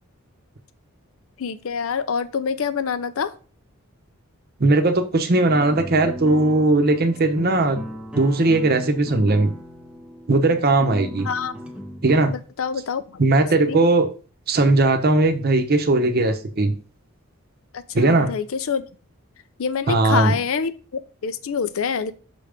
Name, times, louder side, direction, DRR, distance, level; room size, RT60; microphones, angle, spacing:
voice 1, 1.4-3.3 11.2-11.5 12.3-13.8 17.7-18.9 19.6-22.1, left 6 dB, 70° left, 12 dB, 0.5 m, -26 dB
voice 2, 4.6-7.8 8.1-9.5 10.3-11.3 12.0-12.3 13.2-14.1 14.5-16.7 17.9-18.3 19.9-20.3, right 2 dB, 45° right, 6 dB, 0.8 m, -18 dB
sound 1, 5.5-12.2, equal, 5° right, 0.7 m, -37 dB
6.0 x 3.4 x 5.0 m, 0.37 s
head